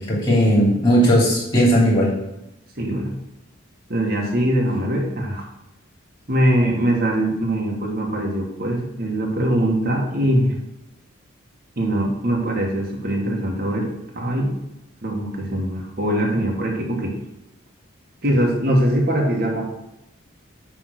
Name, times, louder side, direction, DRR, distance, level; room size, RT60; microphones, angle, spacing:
voice 1, 0.0-2.1, equal, 25° left, -5 dB, 3.0 m, -17 dB
voice 2, 2.8-3.1 3.9-5.5 6.3-10.5 11.8-14.6 15.0-17.1 18.2-19.7, right 1 dB, 50° right, -1 dB, 1.4 m, -22 dB
10.0 x 3.5 x 6.3 m, 0.91 s
head